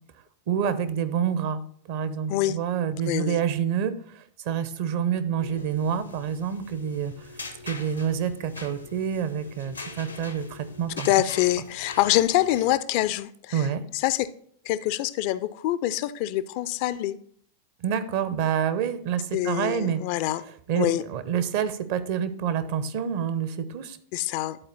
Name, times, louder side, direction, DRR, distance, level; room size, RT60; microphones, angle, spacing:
voice 1, 0.5-1.6 1.9-7.1 7.6-11.1 13.5-13.8 17.8-20.0 20.7-24.0, right 8 dB, 50° right, 0.7 m, -27 dB
voice 2, 3.1-3.4 11.0-13.7 13.9-14.3 14.7-17.2 19.3-20.4 20.7-21.0 24.1-24.6, left 14 dB, 45° left, 0.4 m, -25 dB
sound 1, 5.2-12.7, left 3 dB, 80° left, 0.8 m, -42 dB
11.0 x 4.2 x 3.9 m
figure-of-eight pair, 90°, 0 cm